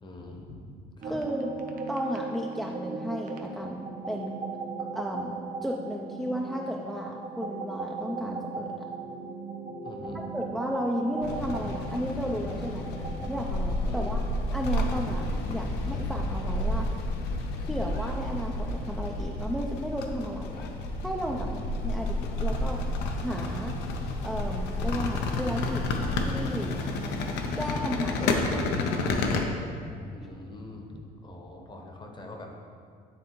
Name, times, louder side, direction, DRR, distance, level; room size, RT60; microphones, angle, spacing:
voice 1, 0.0-1.2 9.8-10.2 13.8-14.2 14.9-15.0 20.5-20.6 21.3-21.6 30.1-32.5, left 2 dB, 25° left, 2 dB, 0.8 m, -43 dB
sound 1, 1.0-13.3, right 4 dB, 55° right, 0.6 m, -37 dB
voice 2, 1.1-1.5 1.9-4.3 4.9-5.3 5.6-8.9 10.3-12.9 13.3-14.2 14.5-16.9 17.6-20.6 21.0-21.5 21.8-22.8 23.2-23.8 24.2-25.9 26.2-26.7 27.6-28.8, equal, ahead, -1 dB, 0.3 m, -33 dB
sound 2, 11.2-29.4, left 2 dB, 85° left, 0.6 m, -30 dB
9.3 x 3.5 x 3.0 m, 2.2 s
cardioid pair, 110°, 17 cm